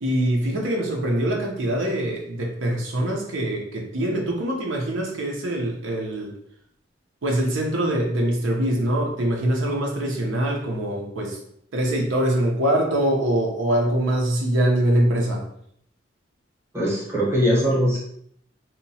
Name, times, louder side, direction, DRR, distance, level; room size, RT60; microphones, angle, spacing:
voice 1, 0.0-6.3 7.2-11.4 11.7-15.4, right 1 dB, 85° right, 0 dB, 0.6 m, -23 dB
voice 2, 16.7-18.0, equal, 15° right, -5 dB, 0.7 m, -21 dB
2.8 x 2.1 x 2.7 m, 0.70 s
head